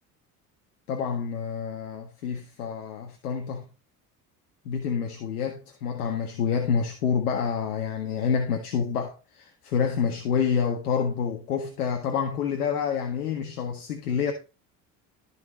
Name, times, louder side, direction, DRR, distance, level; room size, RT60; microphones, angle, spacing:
voice 1, 0.9-3.6 4.6-14.3, left 6 dB, 80° left, 1.7 m, -28 dB
14.5 x 5.2 x 5.1 m
figure-of-eight pair, 60°, 45 cm